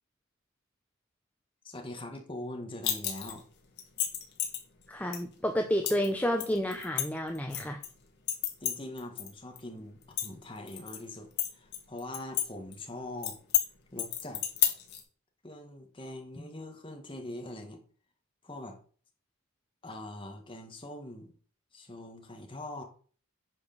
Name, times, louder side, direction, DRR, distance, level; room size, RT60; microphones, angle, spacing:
voice 1, 1.6-3.4 8.6-13.4 13.9-14.4 15.4-17.8 18.4-18.8 19.8-21.3 21.7-22.8, left 1 dB, 25° left, 3 dB, 1.9 m, -42 dB
sound 1, 2.8-3.4 3.8-4.6 5.1-5.2 5.9-6.1 6.4-7.9 8.3-9.3 9.6-9.7 10.0-11.0 11.4-12.5 12.7-12.8 13.2-13.7 14.0-15.0, left 10 dB, 50° left, 2.5 m, -30 dB
voice 2, 4.9-7.8 16.4-16.5, equal, 5° left, 3 dB, 0.8 m, -30 dB
10.0 x 5.1 x 6.7 m, 0.44 s
head